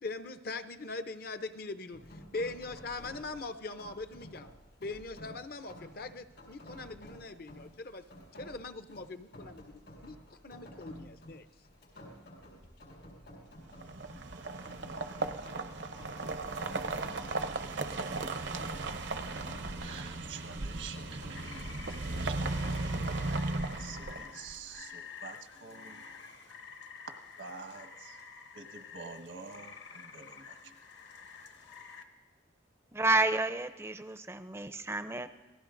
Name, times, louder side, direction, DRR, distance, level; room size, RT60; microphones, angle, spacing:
voice 1, 0.0-4.5 4.8-8.0 8.3-9.7 10.0-11.4, left 3 dB, 50° left, 10 dB, 0.6 m, -41 dB
Rain, 1.9-21.7, equal, 85° left, 4.5 m, -52 dB
sound 1, 13.7-24.5, right 2 dB, 65° right, 0.8 m, -36 dB
voice 2, 19.8-21.8 22.2-22.3 23.8-26.0 27.4-28.2 28.5-30.7, right 5 dB, 85° right, 3 dB, 1.4 m, -47 dB
Rain 2, 21.3-32.0, left 5 dB, 65° left, 1.2 m, -49 dB
voice 3, 32.9-35.3, right 2 dB, 15° right, 10 dB, 0.5 m, -30 dB
27.0 x 19.0 x 2.6 m, 1.1 s
head